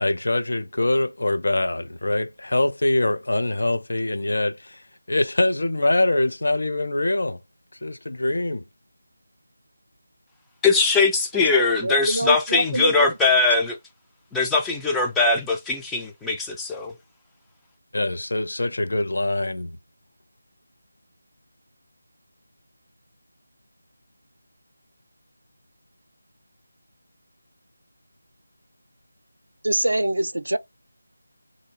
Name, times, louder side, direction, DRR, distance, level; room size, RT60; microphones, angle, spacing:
voice 1, 0.0-4.8 5.1-7.4 7.8-8.6 17.9-19.8, left 2 dB, 65° left, 0.5 m, -24 dB
voice 2, 10.6-13.8 14.3-16.9, left 3 dB, 5° left, 0.4 m, -21 dB
voice 3, 11.5-13.4 29.6-30.6, right 1 dB, 75° right, 0.5 m, -25 dB
2.6 x 2.4 x 2.8 m
figure-of-eight pair, 165°, 0 cm